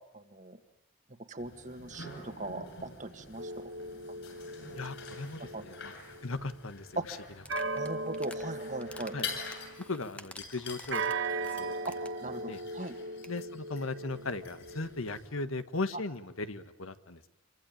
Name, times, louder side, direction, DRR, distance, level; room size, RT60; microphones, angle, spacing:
voice 1, 0.1-0.6 1.3-3.7 5.4-5.6 7.0-7.1 7.8-9.2 11.9-12.0 12.2-13.0, right 2 dB, 35° right, 8 dB, 1.8 m, -39 dB
sound 1, 1.4-15.3, left 4 dB, 55° left, 7.9 m, -47 dB
sound 2, 3.4-6.5 7.5-10.0 10.9-15.2, right 3 dB, 60° right, 1.3 m, -38 dB
voice 2, 4.7-5.9 6.2-7.0 9.1-9.3 9.9-11.0 11.6-11.7 12.5-12.6 13.3-17.2, left 3 dB, 90° left, 10 dB, 1.5 m, -37 dB
sound 3, 7.4-8.4 8.8-12.3 12.5-12.6 12.9-13.0 13.2-13.4, left 2 dB, 5° left, 1.0 m, -50 dB
27.0 x 24.5 x 9.0 m, 0.94 s
head